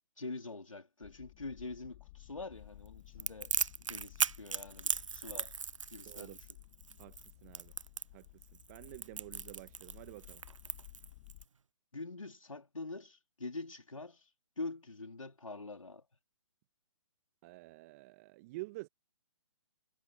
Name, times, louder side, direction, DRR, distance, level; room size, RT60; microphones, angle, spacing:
voice 1, 0.2-3.5 3.8-5.5 5.9-6.4 11.9-14.3 14.6-16.1, left 3 dB, 85° left, 3.4 m, -45 dB
sound 1, 1.0-11.4, left 19 dB, 30° left, 1.5 m, -56 dB
Crackle, 3.2-11.4, right 6 dB, 75° right, 0.6 m, -37 dB
voice 2, 6.1-6.4 7.0-7.7 8.1-10.4 17.4-18.9, right 22 dB, 30° right, 1.5 m, -49 dB
figure-of-eight pair, 140°, 16 cm